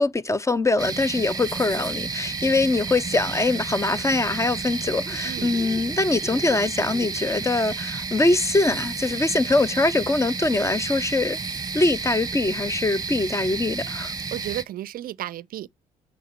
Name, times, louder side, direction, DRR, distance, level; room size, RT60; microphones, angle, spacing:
voice 1, 0.0-11.4 11.7-14.1, left 2 dB, 15° left, 0.5 m, -23 dB
sound 1, 0.8-14.6, right 4 dB, 20° right, 1.0 m, -31 dB
voice 2, 14.3-15.7, right 13 dB, 50° right, 0.4 m, -33 dB
9.1 x 4.4 x 4.3 m
hypercardioid pair, 60°, 19 cm